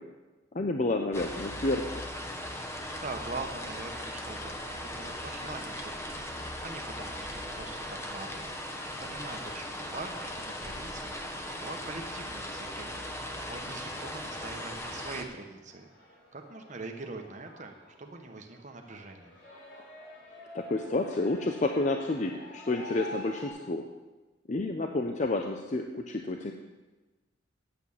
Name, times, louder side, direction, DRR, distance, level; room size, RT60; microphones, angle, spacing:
voice 1, 0.5-2.1 20.5-23.8 24.5-26.5, left 2 dB, 40° left, 4 dB, 0.6 m, -30 dB
sound 1, 1.1-15.2, left 1 dB, 15° left, 0.9 m, -38 dB
voice 2, 2.9-8.7 9.0-13.0 13.5-15.9 16.3-19.3, right 3 dB, 40° right, 4 dB, 1.0 m, -43 dB
sound 2, 12.4-23.5, equal, 65° left, 3.5 m, -49 dB
8.7 x 7.8 x 7.1 m, 1.2 s
head